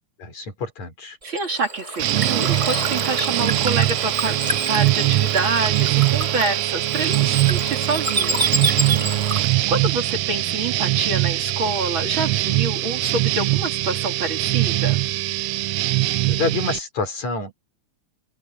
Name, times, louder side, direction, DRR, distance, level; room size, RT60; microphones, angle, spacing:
voice 1, 0.2-1.2 8.9-9.4 16.3-17.5, left 3 dB, 65° left, 6.6 m, -28 dB
Bird / Water, 1.2-9.7, right 2 dB, 15° right, 1.4 m, -28 dB
voice 2, 1.2-8.5 9.7-15.0, right 3 dB, 40° right, 3.2 m, -27 dB
sound 1, 2.0-16.8, right 17 dB, 75° right, 1.6 m, -22 dB
open air
omnidirectional pair, 3.4 m